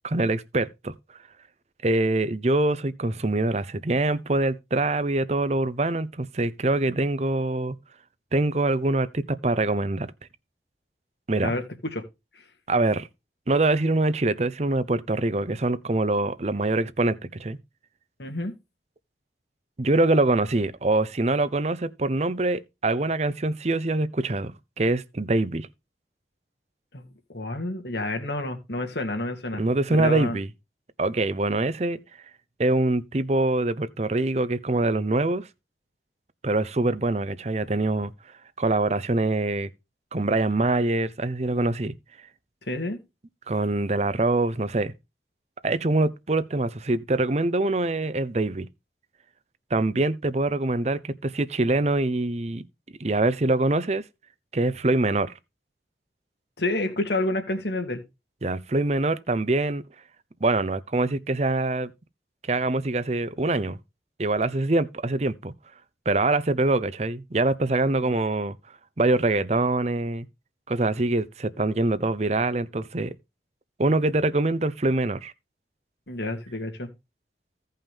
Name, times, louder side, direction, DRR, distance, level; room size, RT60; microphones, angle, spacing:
voice 1, 0.0-0.9 1.8-7.8 8.3-10.1 11.3-11.5 12.7-13.1 13.5-17.6 19.8-25.7 29.6-30.5 31.0-32.0 32.6-35.5 36.4-38.1 38.6-39.7 40.1-41.9 43.5-44.9 45.6-48.7 49.7-52.6 53.0-54.0 54.5-55.3 58.4-59.8 60.4-61.9 62.5-63.8 64.2-65.5 66.1-68.6 69.0-70.3 70.7-73.1 73.8-75.3, right 2 dB, 40° right, 0.7 m, -24 dB
voice 2, 18.2-18.5 26.9-29.6 29.9-30.4 42.6-43.0 56.6-58.0 68.0-68.1 76.1-76.9, left 2 dB, 75° left, 2.3 m, -29 dB
16.0 x 5.6 x 3.5 m
head